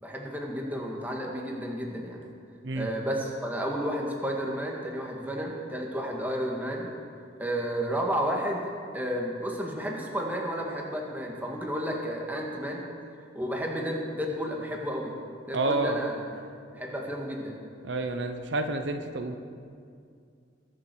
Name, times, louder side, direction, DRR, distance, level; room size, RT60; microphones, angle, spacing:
voice 1, 0.0-2.2 2.7-6.9 7.4-12.9 13.3-15.2 15.5-16.4 16.7-17.6, equal, 10° right, -1 dB, 1.9 m, -32 dB
voice 2, 15.5-16.0 17.8-19.4, right 2 dB, 70° right, 7 dB, 0.9 m, -29 dB
21.5 x 7.6 x 6.3 m, 2.3 s
head